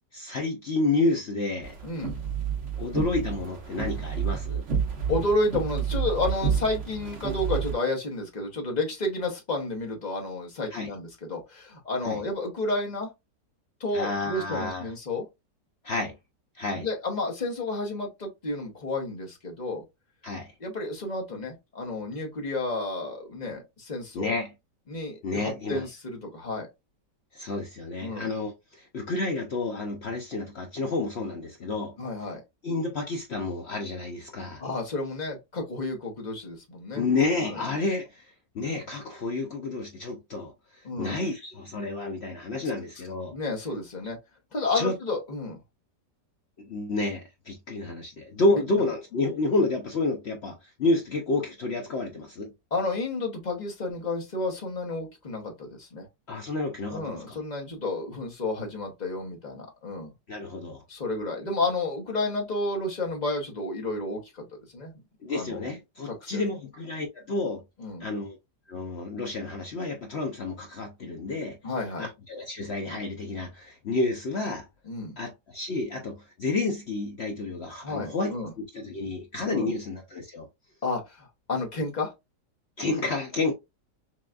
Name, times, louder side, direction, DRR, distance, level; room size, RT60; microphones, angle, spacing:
voice 1, 0.1-1.7 2.8-4.6 10.7-10.9 12.0-12.2 13.9-14.9 15.8-16.1 16.5-16.9 20.2-20.5 24.1-24.5 25.2-25.8 27.3-31.9 32.6-34.6 36.9-38.3 38.5-43.3 44.7-44.9 46.6-52.5 56.3-57.4 60.3-60.8 65.2-67.6 68.0-68.4 68.7-71.6 72.0-74.7 75.2-80.5 82.8-83.5, left 3 dB, 75° left, 0.6 m, -30 dB
sound 1, 1.6-7.7, right 7 dB, 45° right, 1.2 m, -30 dB
voice 2, 1.8-2.2 5.1-13.1 13.8-15.2 16.7-19.8 20.6-24.3 24.9-26.7 28.0-28.3 32.0-32.4 34.6-37.0 37.4-37.6 40.8-41.2 43.3-44.2 44.5-45.6 52.7-56.1 56.9-60.1 60.9-64.5 64.7-64.9 65.3-65.6 66.0-66.4 67.8-68.1 71.6-72.1 74.9-75.2 77.8-78.5 79.5-79.7 80.8-82.1, left 2 dB, 30° left, 0.8 m, -31 dB
6.0 x 2.3 x 2.4 m
omnidirectional pair, 1.9 m